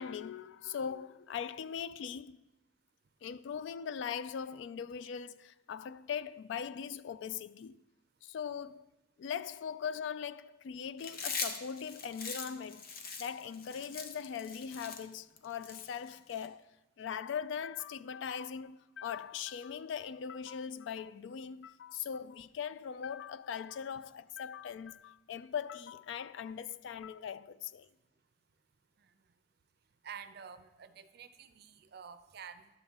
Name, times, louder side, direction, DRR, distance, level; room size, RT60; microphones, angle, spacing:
voice 1, 0.0-2.4 3.2-7.8 8.2-8.9 9.2-12.8 13.2-16.7 17.0-27.9, left 7 dB, 70° left, 0.3 m, -40 dB
Chewing mastication, 11.0-16.5, left 5 dB, 50° left, 0.8 m, -42 dB
voice 2, 30.0-32.7, right 7 dB, 55° right, 0.5 m, -49 dB
10.5 x 3.6 x 7.1 m
head